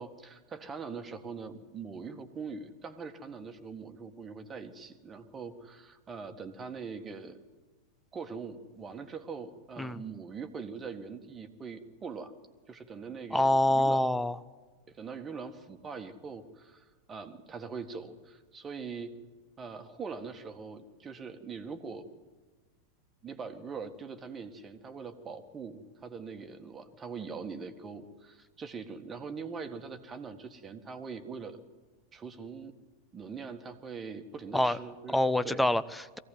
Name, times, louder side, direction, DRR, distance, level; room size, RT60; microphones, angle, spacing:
voice 1, 0.0-7.4 8.1-12.3 12.7-14.0 14.9-19.1 19.6-22.1 23.2-31.6 32.1-32.7 33.1-35.2 35.4-35.6, right 5 dB, 20° right, 7 dB, 1.8 m, -42 dB
voice 2, 13.3-14.4 34.5-34.8 35.1-36.2, left 1 dB, 5° left, 12 dB, 0.8 m, -26 dB
22.5 x 16.5 x 9.3 m, 1.4 s
figure-of-eight pair, 90°, 0 cm